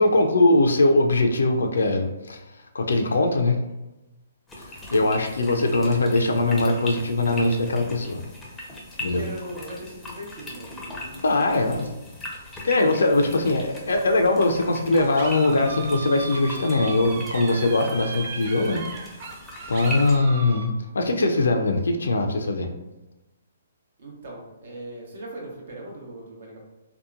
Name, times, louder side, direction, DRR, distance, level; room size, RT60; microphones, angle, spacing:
voice 1, 0.0-2.4 2.7-3.6 4.6-4.7 4.9-8.2 9.0-9.2 11.2-11.9 12.6-18.8 19.7-20.7 20.9-22.7, left 2 dB, 85° left, 4 dB, 0.4 m, -21 dB
sound 1, 4.5-20.2, left 1 dB, 10° left, 0.5 m, -40 dB
voice 2, 9.0-11.9 24.0-26.6, right 1 dB, 70° right, -1 dB, 0.9 m, -39 dB
sound 2, 14.0-20.7, right 5 dB, 50° right, 0.3 m, -37 dB
2.8 x 2.1 x 2.3 m, 1.0 s
hypercardioid pair, 145°, 0 cm